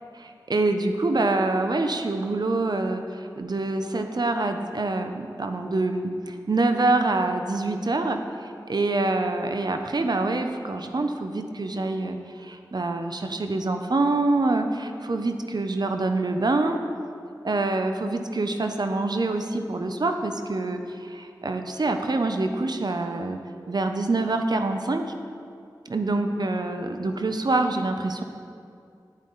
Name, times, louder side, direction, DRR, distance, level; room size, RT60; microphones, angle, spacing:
voice 1, 0.1-16.8 17.4-23.4 23.7-25.0 25.9-28.2, right 2 dB, 60° right, 6 dB, 0.8 m, -26 dB
10.5 x 10.5 x 4.0 m, 2.4 s
cardioid pair, 40°, 8 cm